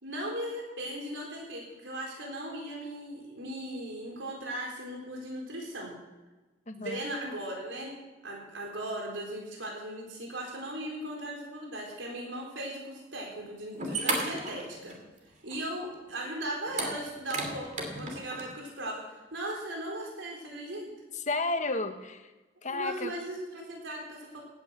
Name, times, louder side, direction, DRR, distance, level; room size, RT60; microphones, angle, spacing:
voice 1, 0.0-6.0 6.7-7.9 8.2-15.0 15.4-20.9 22.7-24.4, right 1 dB, 75° right, -1 dB, 4.1 m, -38 dB
voice 2, 6.7-7.0 21.1-22.3 22.6-23.1, left 3 dB, 40° left, 7 dB, 1.3 m, -32 dB
sound 1, 13.3-13.4 13.7-15.2 15.5-15.6 16.7-18.5, right 2 dB, 40° right, 3.0 m, -33 dB
18.0 x 9.4 x 7.5 m, 1.2 s
head